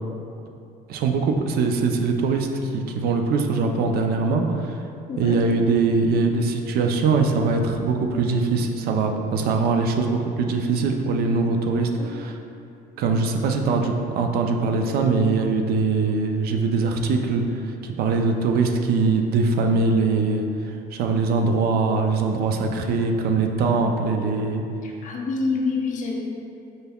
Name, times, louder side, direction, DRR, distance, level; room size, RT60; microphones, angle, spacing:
voice 1, 0.9-4.8 5.2-12.3 13.0-24.6, right 4 dB, 65° right, 4 dB, 0.4 m, -22 dB
voice 2, 5.1-5.4 11.8-12.1 24.8-26.3, left 4 dB, 50° left, 0 dB, 0.6 m, -27 dB
5.4 x 3.5 x 2.3 m, 2.7 s
cardioid pair, 110°, 17 cm